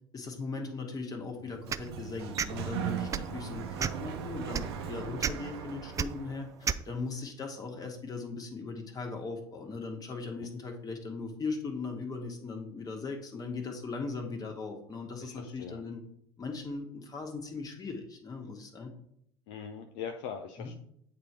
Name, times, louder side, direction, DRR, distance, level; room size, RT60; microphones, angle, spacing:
voice 1, 0.1-16.0 16.4-18.9 20.6-20.7, left 4 dB, 30° left, 3 dB, 1.6 m, -39 dB
Sliding door, 1.4-6.5, right 8 dB, 70° right, 0.8 m, -39 dB
sound 1, 1.7-1.9 2.4-2.5 3.1-3.3 3.8-4.1 4.5-4.7 5.2-5.3 6.0-6.1 6.6-6.8, right 7 dB, 25° right, 0.3 m, -30 dB
voice 2, 15.2-15.8 19.5-20.7, left 7 dB, 55° left, 4 dB, 0.6 m, -41 dB
8.4 x 3.0 x 4.8 m, 0.70 s
hypercardioid pair, 70°, 14 cm